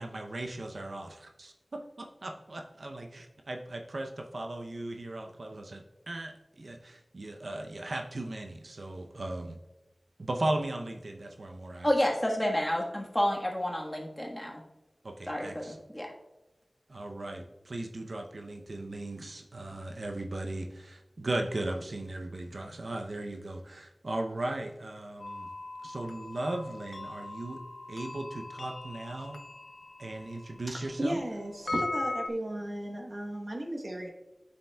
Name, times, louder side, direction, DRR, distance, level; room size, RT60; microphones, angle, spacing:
voice 1, 0.0-9.6 10.2-11.9 15.0-15.8 16.9-25.5 25.8-27.6 27.9-29.4 30.0-31.2, right 2 dB, 80° right, 3 dB, 0.6 m, -37 dB
voice 2, 11.8-14.6 15.3-16.1, left 1 dB, 10° left, -1 dB, 1.3 m, -30 dB
sound 1, 25.2-32.3, left 2 dB, 85° left, 0.4 m, -40 dB
voice 3, 30.7-34.1, right 1 dB, 55° right, 1 dB, 1.0 m, -35 dB
9.1 x 6.9 x 2.2 m, 0.96 s
wide cardioid pair, 55°, 0 cm